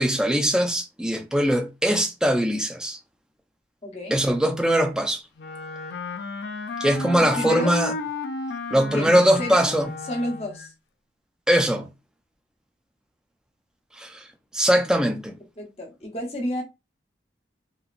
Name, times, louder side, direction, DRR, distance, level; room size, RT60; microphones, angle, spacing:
voice 1, 0.0-3.0 4.1-5.2 6.8-7.9 8.7-9.9 11.5-11.9 14.0-14.2 14.5-15.3, equal, 5° right, 0.4 m, -21 dB
voice 2, 3.8-4.2 7.1-7.7 8.9-9.7 10.0-10.7 15.6-16.6, left 1 dB, 35° left, 1.0 m, -31 dB
Wind instrument woodwind instrument, 5.4-10.7, left 4 dB, 65° left, 0.4 m, -33 dB
2.8 x 2.7 x 2.5 m
head